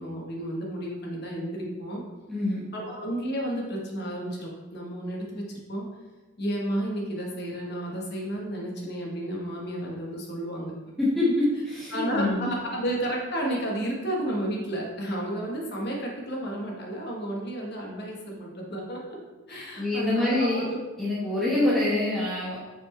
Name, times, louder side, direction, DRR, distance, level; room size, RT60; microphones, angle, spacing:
voice 1, 0.0-2.0 2.7-5.9 6.4-10.7 11.9-19.2 19.5-20.8 21.5-21.8, right 1 dB, 45° left, -1 dB, 1.3 m, -32 dB
voice 2, 2.3-2.6 11.0-11.3 11.7-12.5 19.5-20.7 21.0-22.6, left 2 dB, ahead, -9 dB, 1.1 m, -26 dB
5.9 x 4.4 x 4.4 m, 1.2 s
head